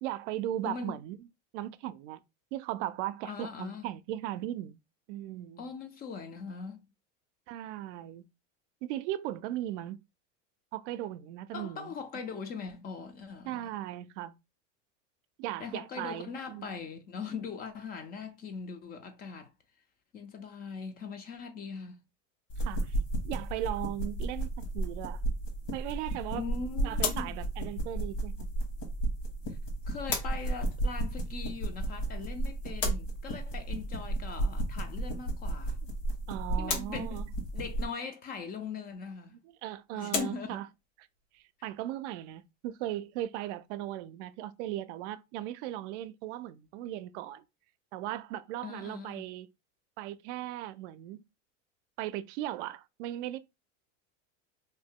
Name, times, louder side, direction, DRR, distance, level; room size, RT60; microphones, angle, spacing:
voice 1, 0.0-1.2 1.5-2.2 2.5-4.8 5.1-5.7 7.5-8.3 8.8-10.0 10.7-11.9 13.4-14.4 15.4-16.7 22.6-23.0 23.2-24.5 24.7-25.2 25.7-26.4 26.8-28.5 36.3-37.3 39.6-40.7 41.0-41.1 41.3-47.4 47.9-49.5 50.0-51.2 52.0-53.4, right 13 dB, 70° right, 0.5 m, -37 dB
voice 2, 0.6-1.0 3.2-3.9 5.6-6.9 11.5-13.7 15.6-19.5 20.1-22.0 26.3-27.3 29.5-29.6 29.9-35.8 36.6-37.3 37.5-39.4 39.9-40.6 48.6-49.3, left 5 dB, 25° left, 0.3 m, -41 dB
sound 1, 22.5-37.9, right 2 dB, 60° left, 1.3 m, -33 dB
sound 2, 24.5-43.8, left 5 dB, 85° left, 1.1 m, -42 dB
2.7 x 2.1 x 3.5 m
supercardioid pair, 125°, 37 cm